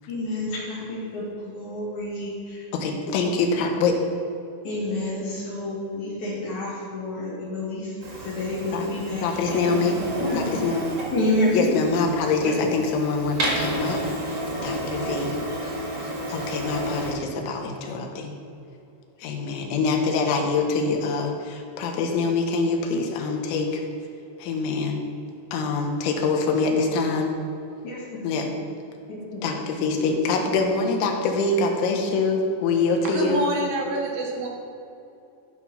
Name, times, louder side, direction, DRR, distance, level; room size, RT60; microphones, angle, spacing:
voice 1, 0.1-2.6 4.6-7.9 8.2-10.6 11.1-11.7 12.4-12.7 14.8-15.1 27.8-28.5 29.1-29.2, left 1 dB, 50° left, -11 dB, 2.8 m, -29 dB
voice 2, 2.7-4.0 8.7-8.9 9.2-10.0 10.3-11.0 11.5-15.4 16.3-18.3 19.2-23.8 24.4-25.0 25.5-27.3 28.2-28.5 29.4-33.5, left 4 dB, 80° left, 3 dB, 3.4 m, -25 dB
Printer, 8.0-17.1, right 1 dB, 85° right, 0.9 m, -31 dB
voice 3, 33.1-34.5, right 1 dB, 70° right, -1 dB, 3.0 m, -27 dB
13.0 x 4.5 x 5.6 m, 2.7 s
omnidirectional pair, 5.4 m